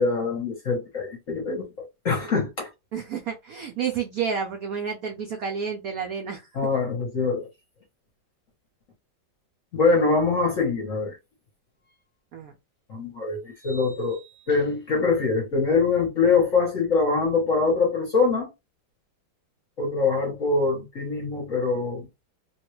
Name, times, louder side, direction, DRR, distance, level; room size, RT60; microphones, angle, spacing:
voice 1, 0.0-2.7 6.5-7.5 9.7-11.2 12.9-14.2 14.5-18.5 19.8-22.1, left 4 dB, 50° left, 1.1 m, -24 dB
voice 2, 2.9-6.5 12.3-12.5, right 6 dB, 70° right, 0.8 m, -30 dB
sound 1, 11.9-12.0 13.6-15.0, right 2 dB, 5° left, 1.1 m, -49 dB
3.2 x 2.3 x 3.0 m
omnidirectional pair, 2.1 m